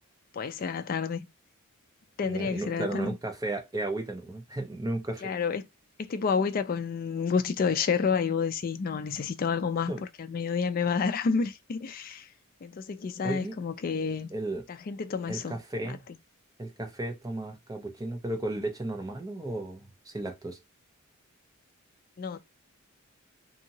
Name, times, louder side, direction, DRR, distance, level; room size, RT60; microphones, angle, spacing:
voice 1, 0.3-1.3 2.2-3.1 5.2-5.6 6.1-12.3 12.6-14.3 14.7-15.6 15.9-16.0 22.2-22.4, left 5 dB, 40° left, 0.3 m, -29 dB
voice 2, 2.2-5.3 9.9-10.0 13.2-13.6 14.3-14.6 15.3-16.0 16.6-20.6, right 2 dB, 15° right, 0.5 m, -34 dB
2.7 x 2.7 x 2.7 m
head